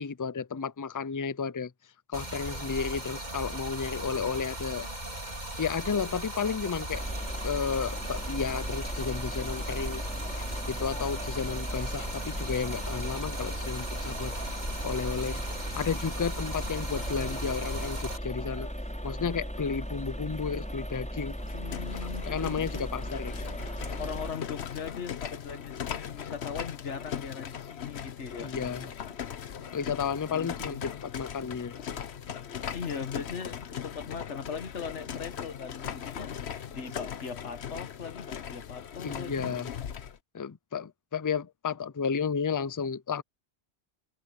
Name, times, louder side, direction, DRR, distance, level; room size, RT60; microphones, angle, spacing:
voice 1, 0.0-1.7 2.1-4.9 5.6-7.0 7.4-10.0 10.7-15.4 15.7-18.7 19.0-21.3 22.2-23.3 28.4-28.9 29.7-31.7 39.0-39.7 40.3-43.2, left 6 dB, 30° left, 0.4 m, -32 dB
Stream, 2.1-18.2, right 1 dB, 40° right, 5.2 m, -38 dB
sound 1, 6.9-24.3, equal, 5° left, 5.6 m, -37 dB
sound 2, 21.3-40.2, left 8 dB, 70° left, 1.2 m, -39 dB
voice 2, 21.5-22.9 24.0-28.6 29.6-30.8 32.7-39.6, left 6 dB, 85° left, 1.8 m, -40 dB
omnidirectional pair, 1.2 m